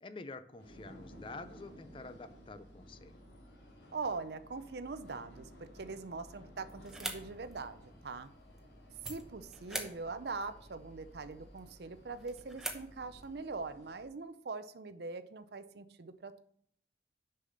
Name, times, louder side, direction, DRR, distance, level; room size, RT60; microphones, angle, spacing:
voice 1, 0.0-3.2, left 3 dB, 30° left, 12 dB, 0.4 m, -48 dB
sound 1, 0.6-14.1, equal, 75° left, 2.3 m, -56 dB
voice 2, 3.9-8.3 9.1-16.4, right 4 dB, 65° right, 12 dB, 0.6 m, -42 dB
sound 2, 6.6-13.3, right 1 dB, 5° right, 0.9 m, -47 dB
6.5 x 5.6 x 6.4 m, 0.64 s
head